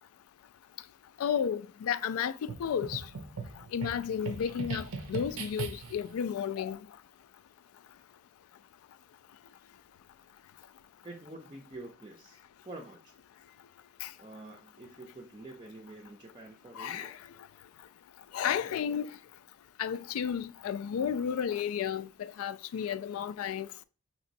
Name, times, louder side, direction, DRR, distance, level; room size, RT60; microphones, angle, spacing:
voice 1, 1.2-3.1 3.7-6.8 14.0-14.1 16.8-17.1 18.3-19.2 19.8-23.7, left 8 dB, 90° left, 0.3 m, -32 dB
sound 1, 2.5-6.1, right 5 dB, 90° right, 0.6 m, -39 dB
voice 2, 11.0-13.2 14.2-17.2, right 2 dB, 20° right, 0.4 m, -47 dB
5.2 x 2.9 x 2.6 m
head